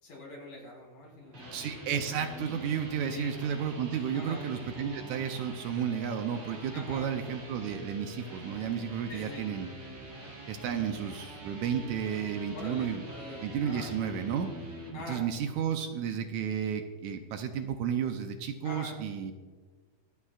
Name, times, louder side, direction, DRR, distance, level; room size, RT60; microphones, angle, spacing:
voice 1, 0.0-1.6 3.1-3.4 4.1-4.5 6.7-7.1 9.1-9.5 12.5-13.9 14.9-15.2 18.6-19.0, left 2 dB, 75° left, -3 dB, 5.4 m, -44 dB
sound 1, 1.1-15.0, right 1 dB, 40° right, 3.3 m, -45 dB
voice 2, 1.5-9.7 10.5-13.0 13.4-14.5 15.1-19.3, right 8 dB, 75° right, 6 dB, 1.9 m, -32 dB
24.5 x 8.3 x 2.4 m, 1.5 s
omnidirectional pair, 3.7 m